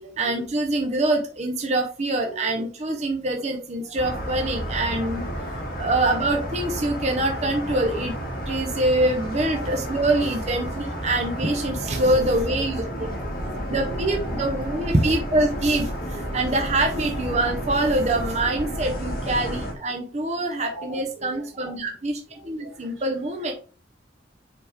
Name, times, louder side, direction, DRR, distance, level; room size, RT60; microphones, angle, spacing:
voice 1, 0.2-8.1 8.5-13.1 13.7-23.5, right 2 dB, 35° right, 0.9 m, -25 dB
voice 2, 3.8-4.2 4.5-4.6 5.8-5.9 9.4-10.1 11.9-12.5 13.0-14.8 15.9-16.4 17.9-18.0 19.4-19.6 19.9-20.0 20.6-21.7 22.3-23.0, equal, 85° right, 3.0 m, -43 dB
sound 1, 4.0-19.7, equal, 50° left, 2.2 m, -31 dB
7.1 x 5.1 x 3.5 m
head